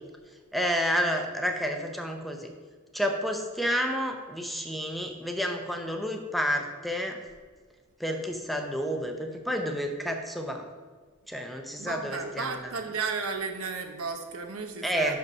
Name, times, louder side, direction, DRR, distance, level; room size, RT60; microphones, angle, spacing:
voice 1, 0.5-2.5 2.9-7.2 8.0-10.7 11.3-12.7 14.8-15.2, equal, ahead, 3 dB, 0.5 m, -30 dB
voice 2, 11.8-15.2, right 4 dB, 80° right, 5 dB, 0.9 m, -34 dB
5.9 x 5.3 x 5.4 m, 1.5 s
head